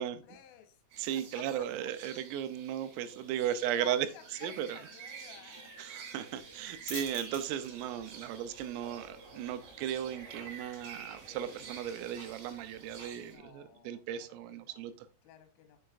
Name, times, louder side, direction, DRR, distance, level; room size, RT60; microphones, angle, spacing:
voice 1, 0.2-0.8 1.1-1.9 3.4-5.8 13.1-14.9 15.2-15.8, left 12 dB, 80° left, 3.5 m, -54 dB
sound 1, 0.9-13.4, right 5 dB, 60° right, 4.1 m, -50 dB
voice 2, 1.0-4.1 4.4-4.8 5.8-15.1, right 10 dB, 85° right, 3.2 m, -36 dB
sound 2, 6.3-13.5, left 2 dB, 45° left, 0.7 m, -52 dB
sound 3, 7.7-13.2, right 2 dB, 45° right, 2.5 m, -56 dB
7.7 x 6.4 x 2.4 m
omnidirectional pair, 5.9 m